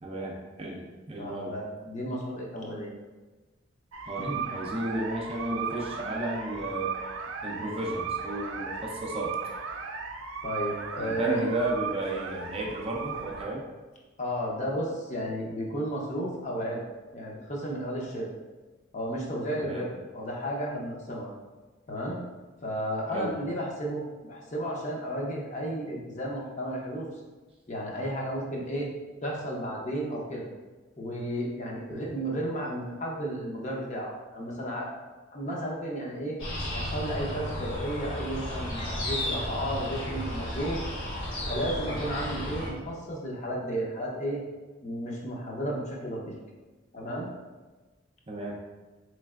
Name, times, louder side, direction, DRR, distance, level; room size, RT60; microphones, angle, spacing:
voice 1, 0.0-1.5 4.1-6.9 7.4-9.4 11.0-13.6 19.6-19.9 23.1-23.3 31.9-32.1 48.3-48.6, right 1 dB, 30° right, -1 dB, 0.4 m, -33 dB
voice 2, 1.2-2.9 4.2-4.4 10.4-11.5 14.2-16.8 17.1-18.3 18.9-19.9 20.1-21.3 21.9-22.2 22.6-27.1 27.7-28.9 29.2-30.5 31.0-34.9 35.3-36.4 36.7-40.8 41.5-44.4 44.8-46.4 46.9-47.3, equal, 35° left, -2 dB, 0.6 m, -33 dB
sound 1, 3.9-13.5, right 5 dB, 90° right, 0.4 m, -36 dB
sound 2, 36.4-42.7, left 1 dB, 90° left, 1.2 m, -33 dB
4.0 x 3.1 x 2.4 m, 1.2 s
head